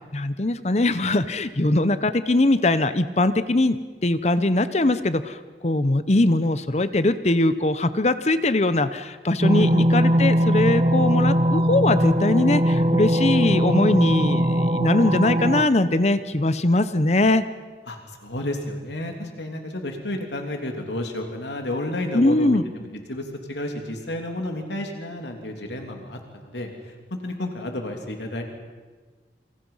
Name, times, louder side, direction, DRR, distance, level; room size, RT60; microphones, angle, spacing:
voice 1, 0.1-17.4 22.1-22.6, left 2 dB, 40° left, 12 dB, 0.8 m, -21 dB
sound 1, 9.4-15.6, equal, 35° right, 1.0 m, -20 dB
voice 2, 9.5-9.8 17.9-26.9 27.2-28.4, left 1 dB, 85° left, 3 dB, 3.1 m, -31 dB
28.0 x 26.0 x 5.7 m, 1.4 s
head